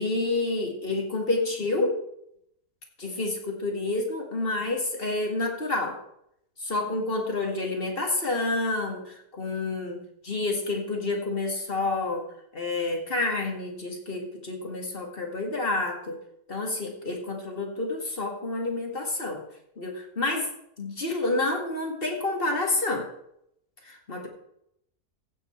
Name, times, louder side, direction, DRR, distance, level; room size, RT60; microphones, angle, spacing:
voice 1, 0.0-2.0 3.0-6.0 6.6-12.3 12.5-16.2 16.5-19.4 19.8-20.5 20.8-23.1 23.9-24.3, left 2 dB, 35° left, 2 dB, 2.1 m, -29 dB
15.0 x 7.2 x 4.5 m, 0.75 s
omnidirectional pair, 1.6 m